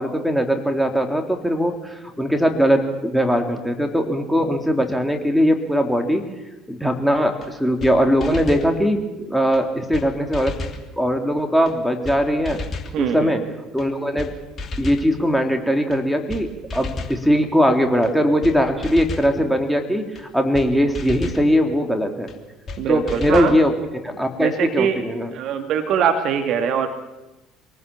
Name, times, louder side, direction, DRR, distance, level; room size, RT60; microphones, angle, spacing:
voice 1, 0.0-6.2 6.7-10.5 11.0-12.6 13.0-13.4 13.7-14.3 14.8-22.3 22.9-23.7 24.0-25.3, equal, ahead, 4 dB, 3.4 m, -20 dB
sound 1, 7.4-7.5 7.8-7.9 8.2-8.7 9.5-9.6 9.9-10.1 10.3-10.8 11.7-11.8 12.0-12.2 12.4-12.9 13.8-13.9 14.2-14.3 14.6-15.1 15.9-16.0 16.3-16.4 16.7-17.2 18.0-18.1 18.4-18.6 18.8-19.3 20.2-20.3 20.5-20.7 20.9-21.4 22.3-22.4 22.7-22.8 23.1-23.6, left 3 dB, 35° left, 3.0 m, -31 dB
voice 2, 12.9-13.4 22.8-23.5 24.1-25.1 25.3-26.9, right 8 dB, 50° right, 6 dB, 2.2 m, -22 dB
25.5 x 18.5 x 7.3 m, 1.0 s
figure-of-eight pair, 60°, 0 cm